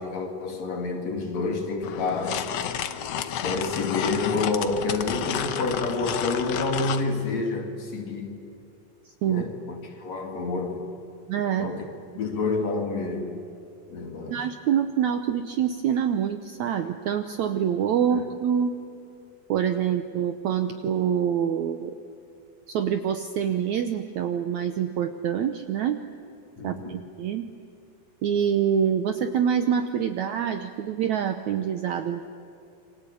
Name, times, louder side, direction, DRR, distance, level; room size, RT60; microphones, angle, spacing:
voice 1, 0.0-2.5 3.4-8.4 9.2-10.9 11.6-11.9 12.2-13.4 13.9-14.4 18.1-18.2 26.6-27.0, left 3 dB, 50° left, 3 dB, 3.5 m, -28 dB
sound 1, 1.8-7.1, left 9 dB, 75° left, 1.5 m, -31 dB
voice 2, 9.1-9.4 11.3-11.7 14.3-18.7 19.5-22.0 22.7-26.0 26.6-27.5 28.2-32.3, right 8 dB, 70° right, 8 dB, 1.8 m, -26 dB
28.5 x 24.5 x 8.5 m, 2.6 s
omnidirectional pair, 4.3 m